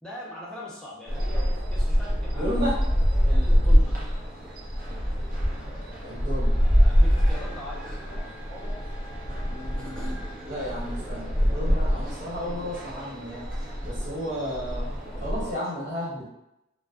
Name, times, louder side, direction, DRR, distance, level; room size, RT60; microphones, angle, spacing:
voice 1, 0.0-2.5 3.2-4.0 6.8-8.0 9.8-10.2 15.0-15.8, equal, 5° left, -6 dB, 0.5 m, -41 dB
sound 1, 1.1-15.5, equal, 45° right, 0.6 m, -25 dB
voice 2, 2.3-2.8 6.0-6.6 9.4-13.4 13.8-14.8 15.2-16.3, equal, 60° right, -9 dB, 1.1 m, -33 dB
2.5 x 2.1 x 2.3 m, 0.86 s
head